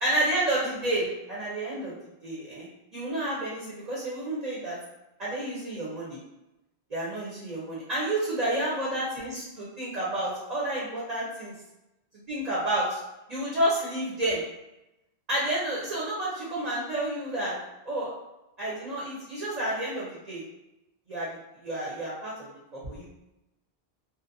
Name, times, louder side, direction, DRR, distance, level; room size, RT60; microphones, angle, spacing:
voice 1, 0.0-1.9 2.2-4.8 5.2-6.2 6.9-11.5 12.3-13.0 13.3-14.4 15.3-17.6 17.8-18.1 18.6-20.4 21.1-21.3 21.6-23.0, right 1 dB, 45° right, -7 dB, 0.8 m, -30 dB
2.7 x 2.1 x 2.6 m, 0.92 s
omnidirectional pair, 1.1 m